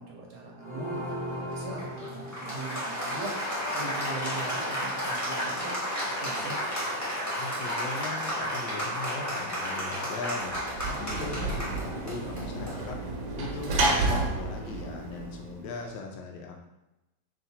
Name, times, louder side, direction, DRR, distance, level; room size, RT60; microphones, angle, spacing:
voice 1, 0.0-3.4 3.7-5.7 6.1-6.6, right 2 dB, 65° right, -1 dB, 1.1 m, -40 dB
Applause, 0.6-15.0, equal, 10° left, 0.8 m, -33 dB
voice 2, 7.4-16.6, left 4 dB, 75° left, 2 dB, 1.3 m, -39 dB
Sliding door / Slam, 10.5-15.9, right 2 dB, 85° right, 1.4 m, -31 dB
3.8 x 2.5 x 4.0 m, 0.96 s
omnidirectional pair, 2.1 m